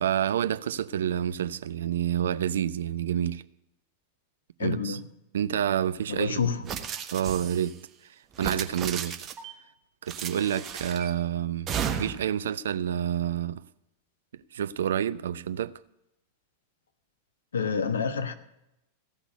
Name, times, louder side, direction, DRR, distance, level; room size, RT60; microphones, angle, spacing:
voice 1, 0.0-3.4 4.6-5.0 5.3-6.5 7.1-7.7 8.4-9.2 10.0-13.6 14.5-15.7, right 9 dB, 65° right, 0.5 m, -28 dB
voice 2, 4.6-5.0 6.1-6.6 17.5-18.3, left 6 dB, 70° left, 1.1 m, -28 dB
sound 1, 6.7-7.7 8.3-9.5 10.1-11.1 11.7-12.3, right 8 dB, 30° right, 1.3 m, -34 dB
16.0 x 6.0 x 9.0 m
figure-of-eight pair, 90°, 0 cm